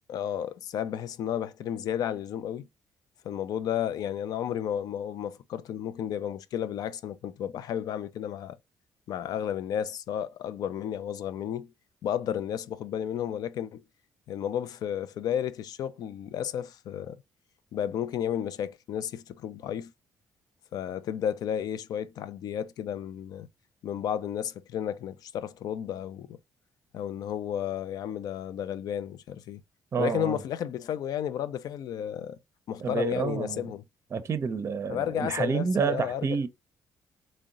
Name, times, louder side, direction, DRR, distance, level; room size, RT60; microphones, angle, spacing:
voice 1, 0.1-2.7 3.2-8.6 9.1-11.7 12.0-13.8 14.3-17.2 17.7-19.9 20.7-23.5 23.8-26.4 26.9-29.6 30.0-32.4 32.7-33.8 34.9-36.4, left 9 dB, 70° left, 0.4 m, -32 dB
voice 2, 29.9-30.4 32.8-33.7 34.1-36.5, right 6 dB, 40° right, 0.5 m, -29 dB
3.6 x 2.1 x 3.8 m
supercardioid pair, 70°, 7 cm